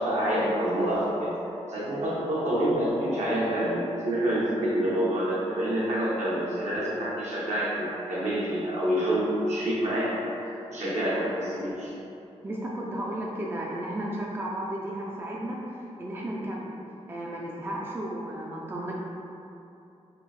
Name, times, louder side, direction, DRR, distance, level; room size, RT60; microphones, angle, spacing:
voice 1, 0.0-1.3 1.7-11.9, right 1 dB, 70° right, -8 dB, 1.2 m, -27 dB
voice 2, 12.4-16.8 17.1-18.9, right 1 dB, 20° right, -3 dB, 0.4 m, -34 dB
3.8 x 2.4 x 4.1 m, 2.8 s
wide cardioid pair, 110°, 12 cm